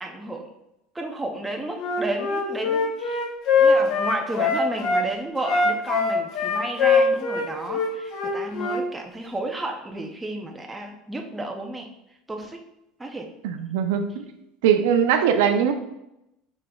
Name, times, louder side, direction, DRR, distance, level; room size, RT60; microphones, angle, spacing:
voice 1, 0.0-0.5 0.9-3.2 3.6-11.9 12.3-12.6 13.0-13.3, right 2 dB, 10° right, 2 dB, 0.4 m, -32 dB
Wind instrument woodwind instrument, 1.8-5.0 5.4-8.8, left 4 dB, 50° left, 0.7 m, -22 dB
voice 2, 13.4-14.3 14.6-15.7, right 8 dB, 85° right, 7 dB, 0.4 m, -21 dB
4.9 x 4.0 x 2.2 m, 0.87 s
cardioid pair, 150°, 0 cm